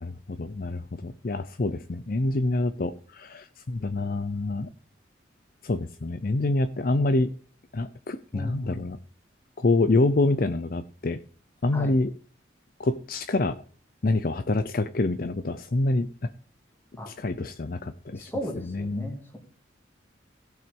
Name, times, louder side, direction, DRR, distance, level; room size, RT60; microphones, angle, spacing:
voice 1, 0.0-4.7 5.6-7.3 7.7-9.0 9.6-11.2 11.6-12.1 12.8-13.6 14.0-16.3 17.1-18.3 18.6-19.2, left 2 dB, 50° left, 11 dB, 0.6 m, -26 dB
voice 2, 8.3-8.9 11.7-12.0 17.0-17.1 18.1-19.4, equal, 10° left, 3 dB, 2.6 m, -36 dB
16.0 x 5.8 x 5.3 m, 0.42 s
head